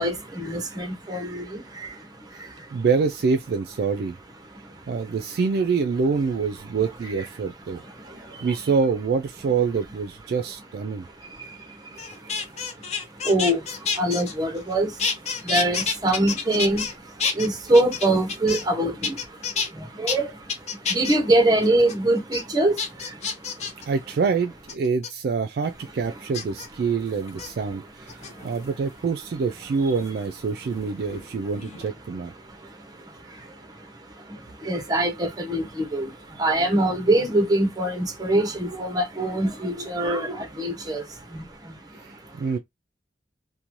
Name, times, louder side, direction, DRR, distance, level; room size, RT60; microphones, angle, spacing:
voice 1, 0.0-2.8 4.5-4.9 7.7-8.6 10.9-12.8 13.1-23.9 28.1-28.6 29.8-29.9 32.4-42.4, right 1 dB, 20° right, 0.7 m, -25 dB
voice 2, 2.7-4.2 4.9-7.8 8.4-11.0 23.9-32.3 42.0-42.6, right 5 dB, 55° right, 0.3 m, -26 dB
sound 1, 12.0-14.7 15.0-16.9 17.2-18.7 19.0-19.7 20.1-20.2 20.5-21.2 21.6-21.9 22.3-22.4 22.8-23.8 24.7-25.1 26.3-26.7 27.3-27.5 28.1-28.6 30.1-31.3 31.5-31.9, left 5 dB, 35° left, 0.5 m, -29 dB
2.6 x 2.1 x 2.9 m
head